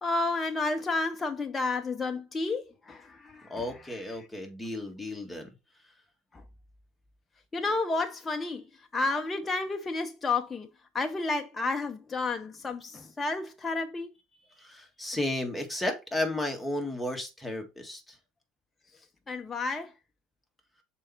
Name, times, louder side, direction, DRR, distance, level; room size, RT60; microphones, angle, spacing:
voice 1, 0.0-4.1 6.3-6.4 7.5-10.7 10.9-14.1 19.3-19.9, left 3 dB, 25° left, 0.7 m, -31 dB
voice 2, 3.5-5.5 14.6-18.2, left 1 dB, 5° left, 1.9 m, -33 dB
6.2 x 4.5 x 4.4 m
figure-of-eight pair, 70°, 0 cm